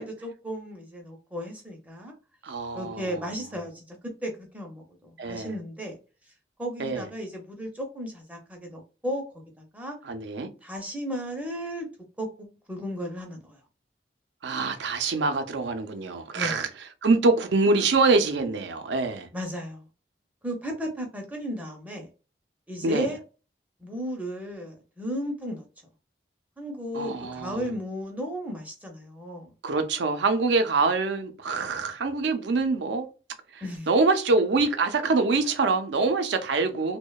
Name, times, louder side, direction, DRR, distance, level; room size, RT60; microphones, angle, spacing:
voice 1, 0.0-2.1 2.7-6.0 6.6-9.2 9.6-10.0 10.6-11.9 12.2-13.6 16.3-16.6 19.3-19.8 20.4-22.1 22.7-23.2 23.8-25.7 26.6-29.5 33.6-33.9 35.1-35.2, equal, 10° right, 0.5 m, -35 dB
voice 2, 2.4-3.2 5.2-5.5 6.8-7.0 10.1-10.5 14.4-16.7 17.0-19.3 22.8-23.1 26.9-27.6 29.6-33.1 33.5-37.0, right 3 dB, 80° right, 0.5 m, -25 dB
2.8 x 2.0 x 2.2 m
head